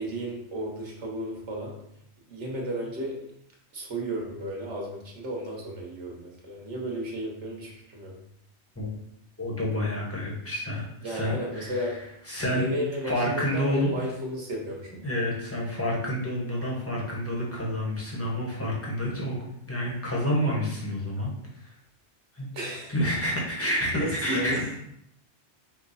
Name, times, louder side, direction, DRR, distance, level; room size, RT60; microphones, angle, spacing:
voice 1, 0.0-1.7 2.3-3.2 3.7-8.1 11.0-12.0 12.5-15.0 22.5-23.0 23.6-24.8, right 1 dB, 80° right, -1 dB, 1.5 m, -33 dB
voice 2, 9.4-11.9 12.3-12.7 13.0-14.0 15.0-19.3 19.7-21.3 22.3-22.5 22.9-24.5, left 1 dB, 15° left, -4 dB, 1.1 m, -29 dB
5.1 x 2.3 x 4.1 m, 0.75 s
omnidirectional pair, 1.2 m